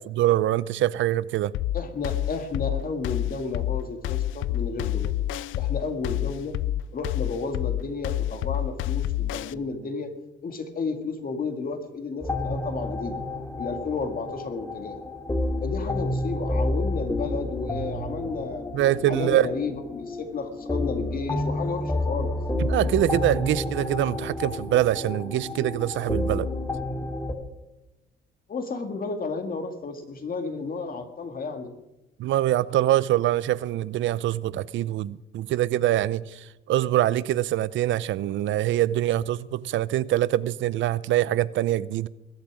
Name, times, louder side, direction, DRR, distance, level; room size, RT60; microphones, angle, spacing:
voice 1, 0.1-1.5 18.7-19.5 22.6-26.5 32.2-42.1, right 13 dB, 75° right, 0.5 m, -24 dB
sound 1, 1.5-9.5, left 13 dB, 80° left, 0.4 m, -28 dB
voice 2, 1.7-5.1 5.6-6.6 6.9-10.1 10.4-13.2 13.6-15.0 15.6-18.6 19.1-22.3 28.5-31.7, left 4 dB, 45° left, 2.2 m, -32 dB
sound 2, 12.2-27.3, left 2 dB, 15° left, 2.1 m, -30 dB
21.0 x 8.5 x 6.2 m
cardioid pair, 90°, 20 cm